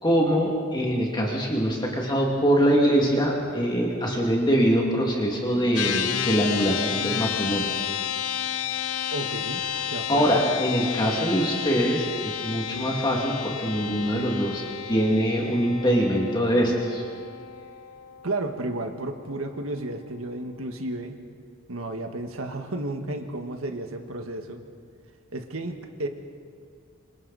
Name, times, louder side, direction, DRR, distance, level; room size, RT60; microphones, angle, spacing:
voice 1, 0.0-7.7 10.1-17.1, equal, 20° left, -2 dB, 2.4 m, -23 dB
sound 1, 5.8-19.3, left 9 dB, 90° left, 0.9 m, -32 dB
voice 2, 9.1-10.4 18.2-21.2 21.7-24.6 25.3-26.1, right 2 dB, 70° right, 5 dB, 1.7 m, -32 dB
26.5 x 26.0 x 4.2 m, 2.1 s
head